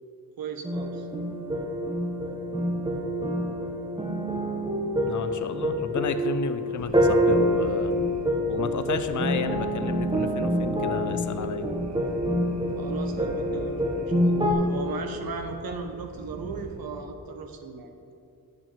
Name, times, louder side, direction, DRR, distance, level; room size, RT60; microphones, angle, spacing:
voice 1, 0.4-1.1 12.8-17.9, right 5 dB, 90° right, 5 dB, 1.0 m, -37 dB
sound 1, 0.6-14.5, equal, 15° right, 1.0 m, -26 dB
voice 2, 5.1-7.9 8.5-11.7, left 6 dB, 60° left, 10 dB, 0.6 m, -32 dB
sound 2, 6.8-16.9, right 1 dB, 50° right, 1.5 m, -43 dB
9.2 x 6.0 x 6.7 m, 2.6 s
wide cardioid pair, 165°, 35 cm